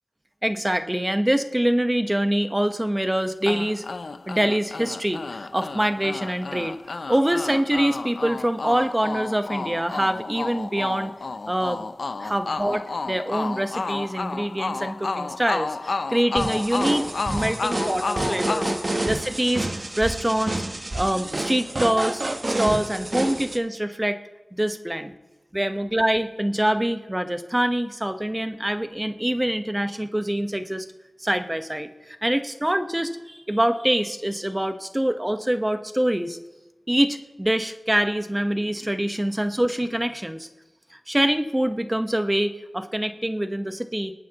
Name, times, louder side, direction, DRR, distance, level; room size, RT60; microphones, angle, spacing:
voice 1, 0.4-3.8 4.3-6.8 7.1-11.1 11.5-11.8 12.2-20.6 20.9-22.2 22.5-24.2 24.5-25.1 25.5-30.9 31.2-36.4 36.9-40.5 40.9-44.1, right 1 dB, 15° right, 8 dB, 1.1 m, -25 dB
sound 1, 3.5-19.6, left 3 dB, 75° left, 0.5 m, -32 dB
sound 2, 16.4-23.6, right 2 dB, 40° right, 1.1 m, -29 dB
22.0 x 9.3 x 3.0 m, 1.1 s
wide cardioid pair, 60°, 0 cm